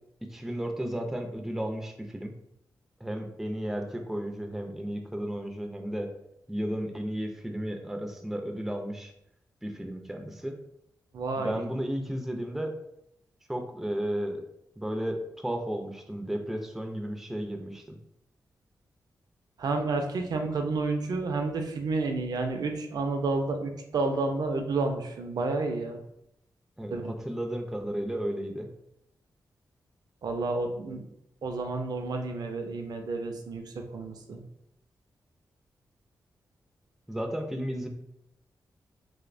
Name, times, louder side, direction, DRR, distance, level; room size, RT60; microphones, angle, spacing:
voice 1, 0.2-2.3 3.0-6.1 6.5-9.1 9.6-10.6 11.4-12.7 13.5-14.4 14.8-18.0 26.8-28.7 37.1-37.9, equal, 5° right, 3 dB, 0.4 m, -33 dB
voice 2, 11.1-11.6 19.6-26.0 26.9-27.1 30.2-31.0 31.4-34.4, right 3 dB, 65° right, 4 dB, 0.4 m, -30 dB
2.7 x 2.1 x 2.4 m, 0.78 s
cardioid pair, 55°, 7 cm